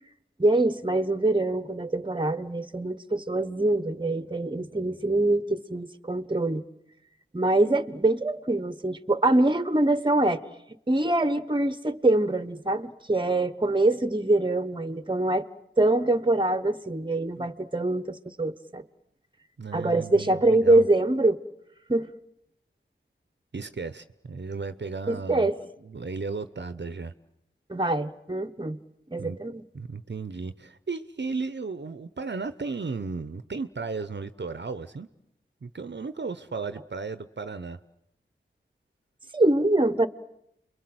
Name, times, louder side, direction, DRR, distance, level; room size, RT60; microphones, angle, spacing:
voice 1, 0.4-6.6 7.3-10.4 10.9-15.5 15.8-18.8 19.7-21.4 21.9-22.1 25.1-25.6 27.7-28.8 29.1-29.6 39.3-40.1, right 2 dB, 25° right, 13 dB, 1.2 m, -24 dB
voice 2, 19.6-20.8 23.5-25.5 25.8-27.1 29.2-29.4 29.7-35.1 35.6-37.8, right 4 dB, 60° right, 12 dB, 0.9 m, -35 dB
29.5 x 22.5 x 7.9 m, 0.81 s
wide cardioid pair, 45°, 21 cm